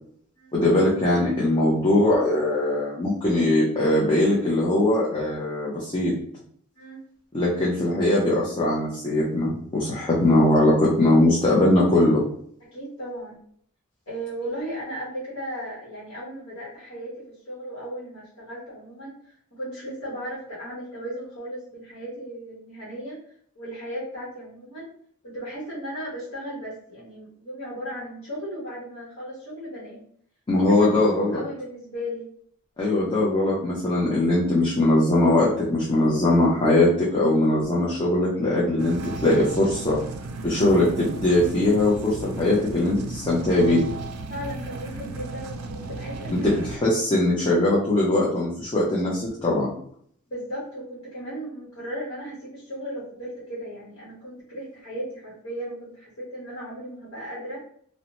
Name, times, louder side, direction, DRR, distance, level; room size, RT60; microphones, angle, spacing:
voice 1, 0.5-6.1 7.3-12.2 30.5-31.4 32.8-40.0 40.4-43.9 46.4-49.7, left 1 dB, 25° left, -6 dB, 0.5 m, -21 dB
voice 2, 12.7-13.4 14.1-19.1 19.5-23.2 23.5-24.9 25.2-30.0 30.6-32.3 44.3-46.6 50.3-57.6, equal, 70° left, -6 dB, 1.0 m, -36 dB
sound 1, 38.8-46.8, right 3 dB, 80° right, 0.3 m, -35 dB
2.7 x 2.1 x 2.9 m, 0.62 s
head